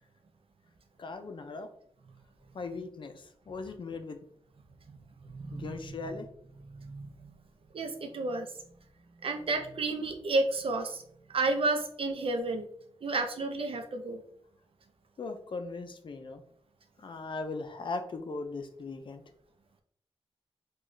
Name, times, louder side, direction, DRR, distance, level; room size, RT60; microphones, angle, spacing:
voice 1, 1.0-1.7 2.5-4.2 5.5-6.3 15.2-16.4 17.0-19.2, left 3 dB, 50° left, 7 dB, 0.5 m, -39 dB
voice 2, 5.3-5.8 6.7-7.3 7.7-8.5 9.2-11.0 11.3-12.7 13.0-14.2, right 3 dB, 60° right, 5 dB, 0.6 m, -31 dB
3.8 x 2.3 x 3.1 m, 0.68 s
wide cardioid pair, 130°, 10 cm